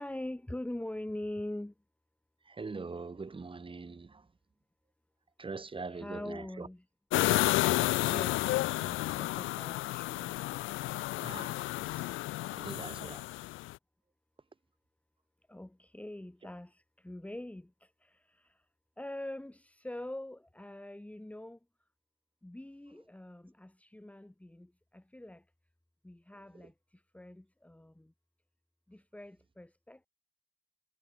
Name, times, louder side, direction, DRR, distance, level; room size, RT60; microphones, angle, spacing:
voice 1, 0.0-1.7 5.9-6.8 7.8-10.3 15.5-18.6 19.0-21.6 22.4-25.4 26.0-28.1 28.9-30.1, left 1 dB, 5° left, 3.0 m, -44 dB
voice 2, 2.5-4.3 5.4-6.7 11.2-11.7 12.5-13.3, right 4 dB, 25° right, 5.6 m, -42 dB
sound 1, 7.1-13.7, left 18 dB, 85° left, 1.6 m, -31 dB
cardioid pair, 85°, 20 cm